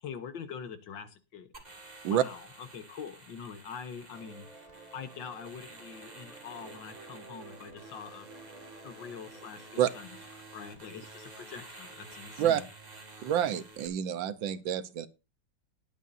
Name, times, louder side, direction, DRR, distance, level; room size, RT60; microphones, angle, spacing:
voice 1, 0.0-1.5 2.1-4.5 4.9-8.3 8.8-10.1 10.5-12.7, left 7 dB, 75° left, 1.9 m, -44 dB
sound 1, 1.5-13.9, right 2 dB, 20° right, 1.9 m, -51 dB
sound 2, 4.1-11.6, right 3 dB, 45° right, 4.4 m, -52 dB
voice 2, 13.2-15.1, right 10 dB, 80° right, 1.6 m, -28 dB
19.5 x 8.3 x 2.7 m
omnidirectional pair, 2.1 m